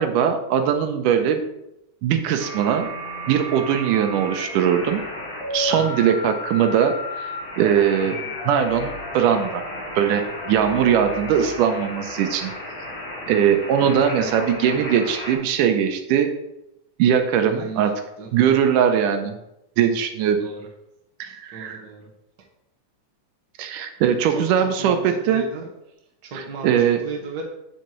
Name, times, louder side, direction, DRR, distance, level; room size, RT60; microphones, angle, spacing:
voice 1, 0.0-1.4 2.0-2.9 3.3-5.0 5.5-7.3 7.6-8.2 8.5-9.6 10.0-12.5 13.3-16.3 17.0-17.9 18.3-19.3 19.8-20.4 21.2-21.8 23.6-25.4 26.3-27.0, right 8 dB, 80° right, 7 dB, 2.2 m, -20 dB
sound 1, 2.4-15.4, left 1 dB, 55° left, 3.4 m, -33 dB
voice 2, 5.7-6.0 8.0-8.4 10.7-11.1 13.3-14.4 14.7-14.8 17.4-18.3 19.3-19.4 20.4-20.7 21.3-22.1 24.3-25.7 26.2-27.4, right 4 dB, 45° right, -1 dB, 1.3 m, -37 dB
9.0 x 7.2 x 3.1 m, 0.86 s
omnidirectional pair, 3.7 m